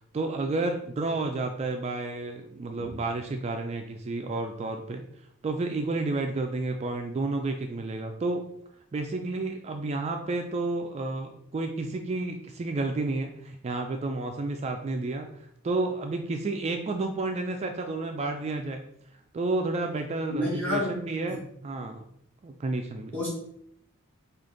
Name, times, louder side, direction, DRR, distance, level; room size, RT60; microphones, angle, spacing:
voice 1, 0.0-5.0 5.4-8.4 8.9-15.3 15.6-18.8 19.3-22.0 22.4-23.2, right 2 dB, 30° right, 5 dB, 0.3 m, -31 dB
voice 2, 20.3-21.0 23.1-23.3, left 1 dB, 10° left, -4 dB, 1.0 m, -28 dB
4.9 x 2.4 x 3.8 m, 0.72 s
head